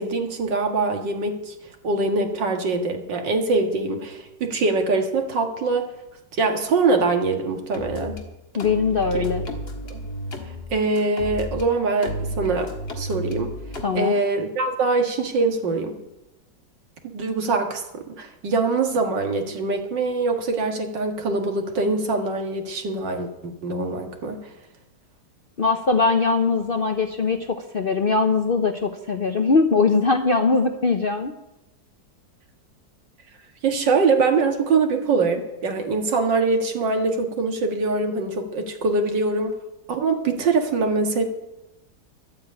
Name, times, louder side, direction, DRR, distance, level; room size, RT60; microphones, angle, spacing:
voice 1, 0.0-1.5 1.8-5.9 6.4-8.2 9.1-9.2 9.9-10.0 10.7-12.7 13.0-13.5 13.9-16.0 17.0-24.5 33.6-39.5 39.9-41.2, right 3 dB, 85° right, 4 dB, 2.3 m, -23 dB
sound 1, 7.7-8.2 8.6-11.6 12.0-13.8, equal, 35° left, 1.9 m, -32 dB
voice 2, 8.5-9.4 13.8-14.1 25.6-31.3, left 4 dB, 50° left, 6 dB, 0.6 m, -21 dB
12.0 x 8.8 x 8.7 m, 0.93 s
omnidirectional pair, 1.9 m